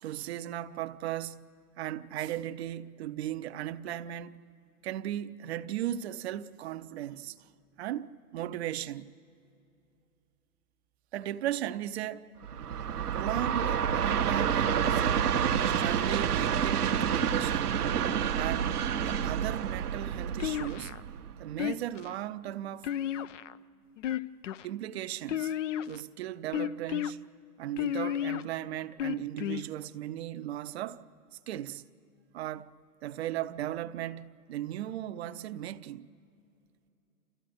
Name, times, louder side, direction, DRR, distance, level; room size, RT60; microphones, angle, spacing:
voice 1, 0.0-1.4 1.8-4.4 4.8-7.5 7.8-9.1 11.1-12.3 13.1-15.3 15.6-17.8 18.3-20.9 21.4-22.9 24.6-25.5 25.9-27.2 27.6-31.0 31.5-31.8 32.3-32.7 33.0-36.1, right 12 dB, 45° right, 0.7 m, -36 dB
Train, 12.4-21.6, right 8 dB, 80° right, 1.0 m, -29 dB
sound 1, 20.4-21.0 21.6-22.1 22.8-23.6 24.0-24.6 25.3-26.0 26.5-27.1 27.8-28.4 29.0-29.6, left 10 dB, 55° left, 0.6 m, -32 dB
29.0 x 14.5 x 7.8 m
hypercardioid pair, 125°, 45 cm